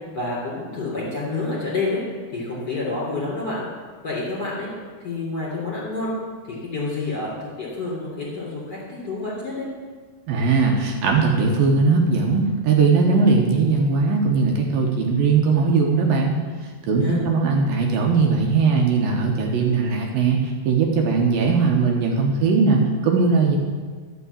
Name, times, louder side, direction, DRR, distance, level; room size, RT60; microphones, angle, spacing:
voice 1, 0.1-2.0 2.3-3.7 4.0-4.7 5.0-6.1 6.5-9.7 16.9-17.2, left 3 dB, 30° left, -5 dB, 3.3 m, -28 dB
voice 2, 10.3-16.4 16.9-20.4 20.7-23.6, right 4 dB, 70° right, 0 dB, 2.7 m, -19 dB
12.0 x 5.9 x 8.3 m, 1.5 s
omnidirectional pair, 4.4 m